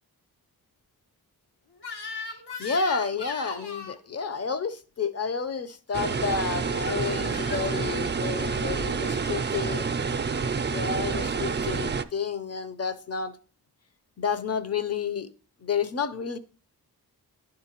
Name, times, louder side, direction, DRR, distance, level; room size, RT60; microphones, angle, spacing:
Crying sobbing / Screech, 1.8-4.0 5.9-6.2 6.9-7.8, left 5 dB, 85° left, 1.1 m, -38 dB
voice 1, 2.3-9.9 10.7-13.4 14.2-15.3 15.6-16.4, left 5 dB, 40° left, 0.7 m, -30 dB
sound 1, 5.9-12.0, right 5 dB, 30° right, 0.4 m, -28 dB
10.5 x 3.8 x 2.9 m
cardioid pair, 40°, 39 cm